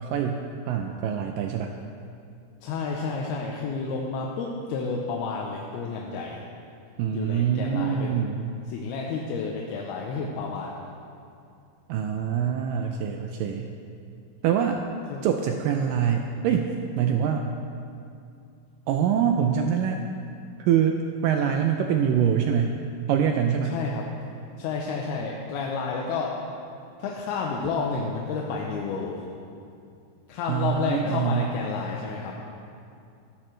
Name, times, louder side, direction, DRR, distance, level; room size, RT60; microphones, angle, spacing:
voice 1, 0.0-1.7 7.0-8.5 11.9-13.7 14.4-14.8 15.2-17.4 18.9-20.0 20.6-22.8 23.1-23.8 30.5-31.5, right 8 dB, 85° right, 4 dB, 1.9 m, -25 dB
voice 2, 2.6-6.4 7.1-8.2 8.7-10.8 15.1-15.3 23.7-24.1 24.6-26.4 27.0-29.3 30.3-32.4, left 4 dB, 85° left, -1 dB, 2.8 m, -30 dB
14.0 x 13.5 x 3.3 m, 2.5 s
omnidirectional pair, 4.5 m